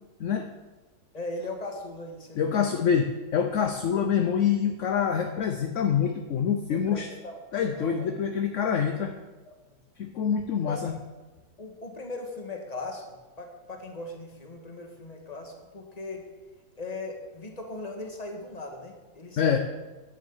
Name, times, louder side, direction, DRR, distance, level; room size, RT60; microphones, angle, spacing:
voice 1, 0.2-0.5 2.4-7.1 7.5-9.1 10.0-10.9 19.4-19.6, left 7 dB, 60° left, 6 dB, 0.8 m, -26 dB
voice 2, 1.1-2.9 6.7-8.1 10.7-10.8 11.6-16.2 16.8-19.6, left 2 dB, 25° left, 2 dB, 1.5 m, -39 dB
9.5 x 7.1 x 7.2 m, 1.2 s
omnidirectional pair, 1.9 m